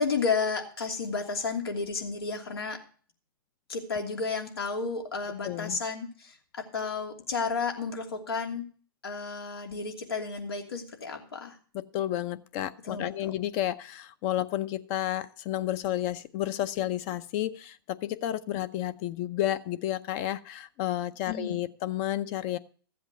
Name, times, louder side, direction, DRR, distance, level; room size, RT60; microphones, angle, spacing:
voice 1, 0.0-2.8 3.7-8.6 9.0-11.6 12.8-13.3 21.3-21.6, left 4 dB, 85° left, 2 dB, 2.8 m, -32 dB
voice 2, 5.4-5.8 11.7-22.6, left 13 dB, 40° left, 13 dB, 0.7 m, -31 dB
14.0 x 8.0 x 5.1 m, 0.43 s
hypercardioid pair, 125°, 12 cm